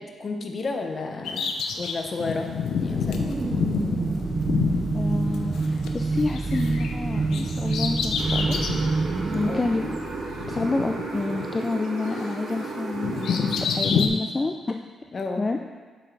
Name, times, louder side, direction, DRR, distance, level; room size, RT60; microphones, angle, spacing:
voice 1, 0.0-3.6 9.4-9.6 15.1-15.5, left 3 dB, 45° left, 4 dB, 0.9 m, -32 dB
Bird vocalization bird call bird song, 1.3-5.9 6.1-8.9 9.3-9.4 10.3-11.8 12.0-14.1, left 6 dB, 80° left, 0.7 m, -28 dB
sound 1, 2.8-11.1, right 3 dB, 35° right, 0.5 m, -27 dB
voice 2, 4.9-8.6 9.3-9.9 10.5-13.4 13.7-14.9 15.4-15.6, left 3 dB, 25° left, 4 dB, 0.4 m, -28 dB
sound 2, 8.2-13.5, right 3 dB, 65° right, 1.4 m, -34 dB
7.5 x 7.4 x 3.4 m, 1.5 s
cardioid pair, 85°, 0 cm